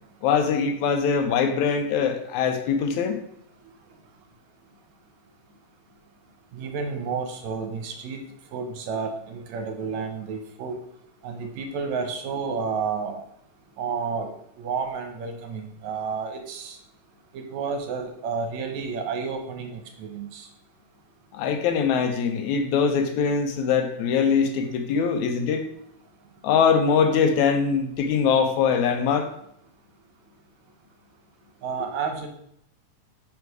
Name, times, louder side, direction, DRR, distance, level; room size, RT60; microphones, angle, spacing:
voice 1, 0.2-3.2 21.3-25.7 26.4-29.3, left 6 dB, 85° left, 6 dB, 2.1 m, -22 dB
voice 2, 6.5-8.2 8.5-10.8 11.2-13.2 13.8-14.3 14.6-16.8 17.3-20.5 31.6-32.3, right 5 dB, 75° right, 4 dB, 2.1 m, -31 dB
5.0 x 4.7 x 4.7 m, 0.71 s
omnidirectional pair, 3.3 m